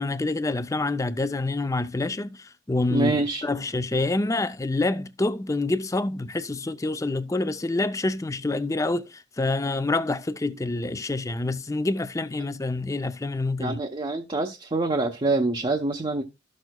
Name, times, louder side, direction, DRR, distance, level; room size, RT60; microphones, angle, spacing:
voice 1, 0.0-13.8, left 2 dB, 20° left, 0.5 m, -27 dB
voice 2, 2.9-3.4 13.6-16.2, right 2 dB, 30° right, 0.7 m, -25 dB
13.0 x 6.3 x 2.2 m
head